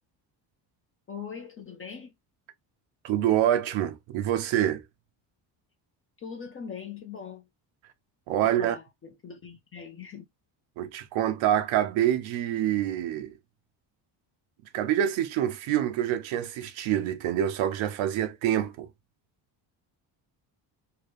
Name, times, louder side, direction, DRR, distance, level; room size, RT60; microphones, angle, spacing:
voice 1, 1.1-2.1 6.2-7.5 8.4-10.3, left 6 dB, 30° left, 0.5 m, -41 dB
voice 2, 3.0-4.8 8.3-8.8 10.8-13.3 14.7-18.9, right 11 dB, 85° right, 0.7 m, -26 dB
2.9 x 2.2 x 3.3 m
cardioid pair, 130°, 45 cm